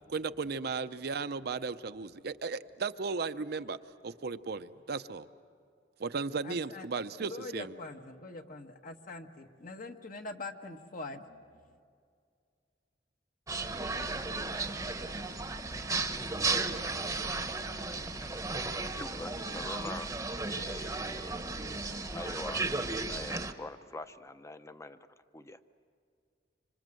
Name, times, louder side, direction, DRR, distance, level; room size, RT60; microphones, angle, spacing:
voice 1, 0.1-3.8 4.0-5.3 6.0-7.8, right 4 dB, 60° right, 10 dB, 0.6 m, -35 dB
voice 2, 6.4-6.9 7.2-11.4, left 3 dB, 50° left, 5 dB, 1.3 m, -43 dB
sound 1, 13.5-23.5, right 3 dB, 20° right, 0.9 m, -35 dB
voice 3, 18.9-20.1 20.4-21.4 21.8-22.7 23.0-25.1 25.3-25.6, left 2 dB, 15° left, 11 dB, 0.7 m, -44 dB
26.5 x 26.0 x 7.7 m, 2.2 s
head